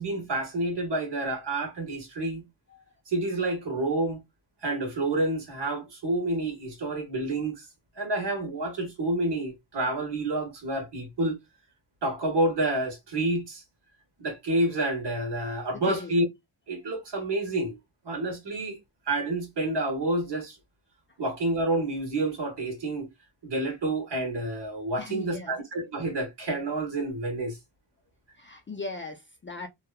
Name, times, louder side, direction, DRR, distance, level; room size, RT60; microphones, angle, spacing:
voice 1, 0.0-2.4 3.1-4.2 4.6-7.6 8.0-11.4 12.0-13.6 14.2-16.3 16.7-17.8 18.0-18.8 19.1-20.6 21.2-23.1 23.4-27.6, right 2 dB, 60° right, 1.0 m, -29 dB
voice 2, 25.0-25.5 28.4-29.7, left 3 dB, 30° left, 0.3 m, -38 dB
2.8 x 2.2 x 2.2 m
wide cardioid pair, 130°, 47 cm